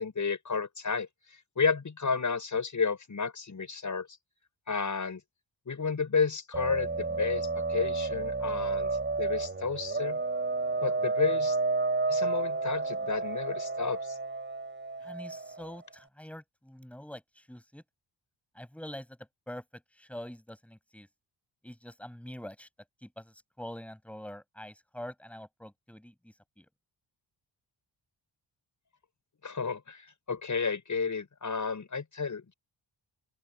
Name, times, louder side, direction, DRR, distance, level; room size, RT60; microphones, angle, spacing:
voice 1, 0.0-4.1 4.7-5.2 5.7-8.9 9.2-10.2 10.8-11.6 12.1-14.2 29.4-32.5, left 5 dB, 40° left, 7.6 m, -31 dB
sound 1, 6.5-15.8, right 3 dB, 25° right, 6.9 m, -31 dB
voice 2, 15.0-17.8 18.6-19.1 19.5-19.6 20.0-21.1 21.6-22.7 23.0-26.7, left 1 dB, 5° left, 7.5 m, -45 dB
open air
wide cardioid pair, 165°, 46 cm